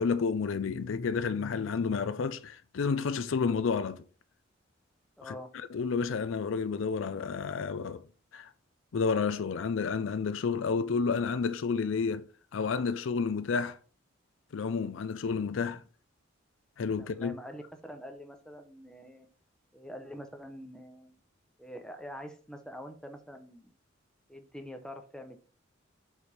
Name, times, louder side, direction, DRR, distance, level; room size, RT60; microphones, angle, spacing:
voice 1, 0.0-4.1 5.2-8.1 8.3-8.5 8.9-13.8 14.5-15.8 16.8-17.3, left 5 dB, 70° left, 0.4 m, -30 dB
voice 2, 5.2-5.5 17.0-19.3 19.7-21.2 21.6-23.8 24.3-25.4, equal, 5° left, 0.7 m, -45 dB
5.1 x 4.8 x 4.2 m
head